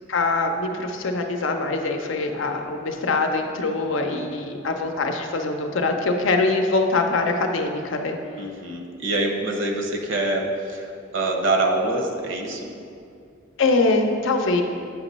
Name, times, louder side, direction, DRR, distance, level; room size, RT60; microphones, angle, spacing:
voice 1, 0.1-8.2 13.6-14.6, left 3 dB, 70° left, 4 dB, 0.6 m, -23 dB
voice 2, 3.8-4.4 8.4-12.7, right 2 dB, 65° right, 2 dB, 0.8 m, -26 dB
8.7 x 3.0 x 5.3 m, 2.4 s
head